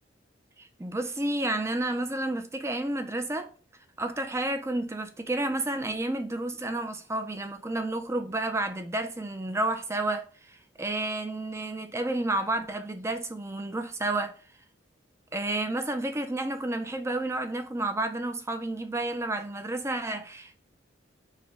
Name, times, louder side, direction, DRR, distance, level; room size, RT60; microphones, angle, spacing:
voice 1, 0.6-3.5 4.0-14.3 15.3-20.5, right 2 dB, 15° right, 0.5 m, -31 dB
4.9 x 2.2 x 3.8 m
head